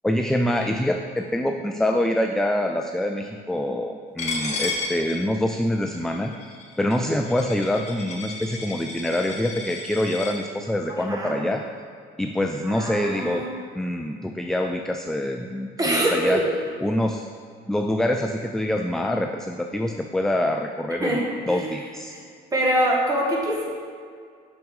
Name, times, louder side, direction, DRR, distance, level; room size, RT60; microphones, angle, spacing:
voice 1, 0.0-11.6 12.2-13.5 13.8-16.4 16.8-17.3 17.7-21.2 21.5-22.1, left 1 dB, 5° left, 4 dB, 0.3 m, -25 dB
Coin (dropping), 4.2-10.3, left 3 dB, 40° left, 1.6 m, -33 dB
voice 2, 12.6-13.5 15.8-16.4 21.0-21.7 22.5-23.6, right 1 dB, 20° right, -2 dB, 1.7 m, -24 dB
6.2 x 6.1 x 5.3 m, 2.1 s
cardioid pair, 110°, 17 cm